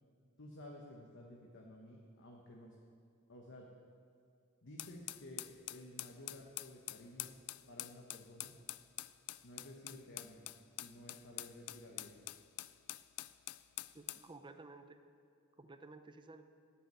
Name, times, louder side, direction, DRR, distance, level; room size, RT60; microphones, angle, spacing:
voice 1, 0.4-2.8 3.3-3.7 4.6-7.4 7.7-8.5 9.4-10.5 10.8-12.1, left 1 dB, 55° left, -1 dB, 1.1 m, -53 dB
sound 1, 4.8-14.3, left 16 dB, 85° left, 0.4 m, -46 dB
voice 2, 13.9-15.0 15.6-16.4, right 3 dB, 20° right, 8 dB, 0.6 m, -54 dB
8.8 x 8.0 x 9.3 m, 2.3 s
head